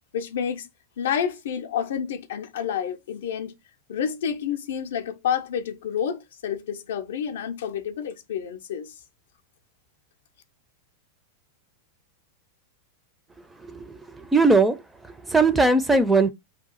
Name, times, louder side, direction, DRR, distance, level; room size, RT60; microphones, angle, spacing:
voice 1, 0.1-0.7 1.0-3.5 3.9-8.9, left 8 dB, 60° left, 0.4 m, -29 dB
voice 2, 13.6-14.8 15.0-16.3, right 3 dB, 10° right, 0.4 m, -20 dB
2.8 x 2.3 x 3.9 m
figure-of-eight pair, 90°, 0 cm